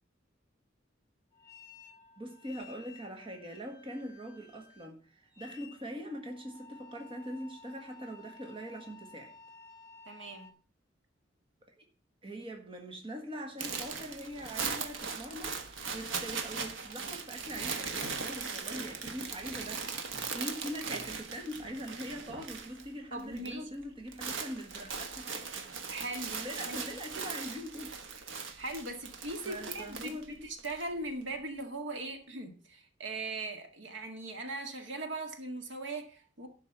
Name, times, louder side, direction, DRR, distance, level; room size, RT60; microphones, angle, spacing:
sound 1, 1.3-10.5, left 4 dB, 20° left, 1.7 m, -55 dB
voice 1, 2.2-9.3 12.2-25.3 26.3-27.9 29.4-30.4, equal, 30° right, 1.5 m, -42 dB
voice 2, 10.1-10.5 23.1-23.7 25.9-26.4 26.7-26.8 28.6-36.5, right 2 dB, 70° right, 1.8 m, -39 dB
sound 2, 13.6-22.9 23.1-23.5 23.8-30.8, right 5 dB, 90° right, 1.2 m, -39 dB
sound 3, 17.5-18.5 18.7-22.6, right 1 dB, 45° right, 1.7 m, -51 dB
11.5 x 4.6 x 7.1 m
head